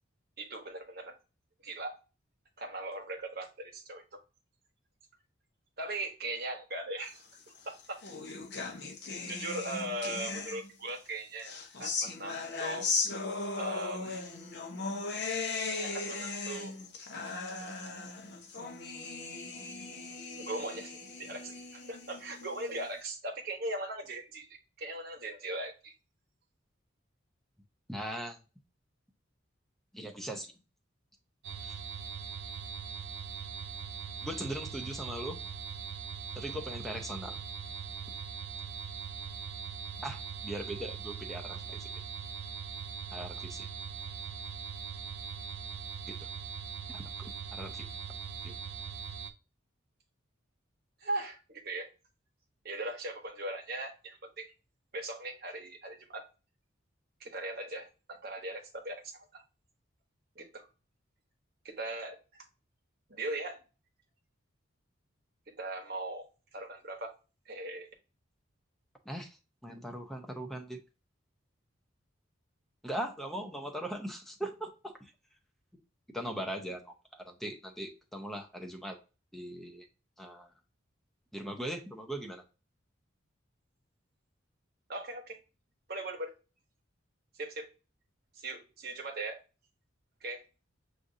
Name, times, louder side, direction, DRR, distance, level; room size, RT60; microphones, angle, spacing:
voice 1, 0.4-1.1 1.6-1.9 2.6-4.2 5.8-7.2 7.6-8.0 8.3-8.4 8.8-8.9 9.2-12.9 13.6-14.2 15.7-16.7 20.4-25.9 51.0-51.9 52.6-54.5 54.9-56.2 57.2-59.4 60.4-60.7 61.6-62.5 63.1-63.6 65.6-67.1 67.5-67.9 84.9-85.4 85.9-86.3 87.4-87.7 88.3-89.4 90.2-90.4, right 2 dB, 50° right, 2 dB, 1.0 m, -39 dB
sound 1, 7.5-10.9 11.4-22.9, left 4 dB, 55° left, 0.8 m, -37 dB
voice 2, 27.9-28.4 29.9-30.5 31.6-31.8 34.2-35.4 36.3-37.4 40.0-41.9 43.1-43.7 46.2-46.3 46.9-47.9 48.4-48.6 69.1-69.4 69.6-70.8 72.8-75.1 76.1-79.0 79.3-79.9 80.2-80.5 81.3-82.4, right 1 dB, ahead, 3 dB, 0.6 m, -40 dB
sound 2, 31.4-49.3, right 6 dB, 75° right, 0.5 m, -41 dB
6.2 x 2.6 x 2.6 m, 0.31 s
head